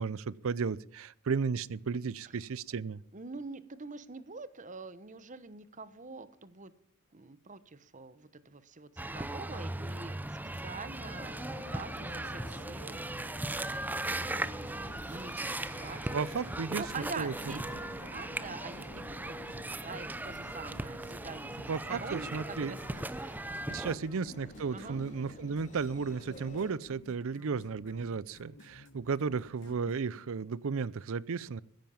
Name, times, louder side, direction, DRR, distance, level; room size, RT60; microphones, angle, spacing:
voice 1, 0.0-3.0 16.1-16.8 17.2-17.3 21.7-22.7 23.7-31.6, right 5 dB, 65° right, 21 dB, 0.5 m, -34 dB
voice 2, 3.1-6.7 7.1-11.4 11.7-14.0 14.3-16.3 16.8-18.9 19.2-21.6 21.9-24.1 24.7-25.0, right 4 dB, 35° right, 15 dB, 1.0 m, -45 dB
sound 1, 9.0-24.0, right 1 dB, 10° right, 0.5 m, -38 dB
sound 2, 11.0-26.8, left 1 dB, 35° left, 2.7 m, -50 dB
sound 3, 12.9-30.4, left 2 dB, 55° left, 1.3 m, -56 dB
15.0 x 10.5 x 7.1 m, 0.67 s
head